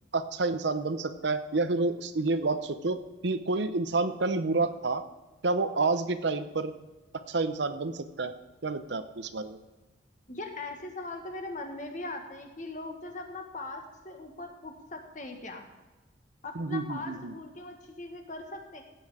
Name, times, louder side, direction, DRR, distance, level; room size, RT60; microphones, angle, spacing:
voice 1, 0.1-5.0 5.4-6.7 7.3-8.3 8.6-9.6 16.6-17.3, right 3 dB, 65° right, 11 dB, 0.8 m, -29 dB
voice 2, 10.3-15.6 16.4-18.8, left 2 dB, 40° left, 4 dB, 1.6 m, -40 dB
15.5 x 7.9 x 4.9 m, 1.2 s
head